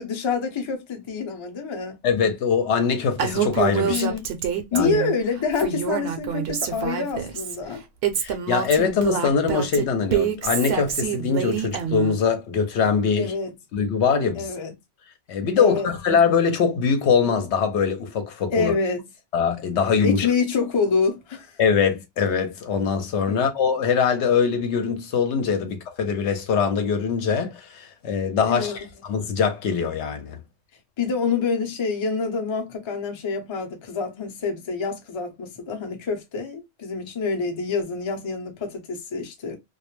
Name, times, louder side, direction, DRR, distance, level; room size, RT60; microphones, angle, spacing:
voice 1, 0.0-2.0 3.8-4.3 4.7-7.8 13.1-13.5 14.4-14.7 15.6-15.9 18.5-19.0 20.0-21.6 23.3-23.4 28.5-28.8 31.0-39.6, left 5 dB, 35° left, 0.5 m, -26 dB
voice 2, 2.0-4.1 4.7-4.9 8.2-13.3 13.7-14.5 15.3-18.7 19.3-20.3 21.6-30.4, left 6 dB, 75° left, 0.9 m, -22 dB
Female speech woman speaking, 3.2-5.1 5.5-7.5 8.0-12.1, right 8 dB, 65° right, 0.7 m, -26 dB
2.3 x 2.1 x 2.9 m
omnidirectional pair, 1.2 m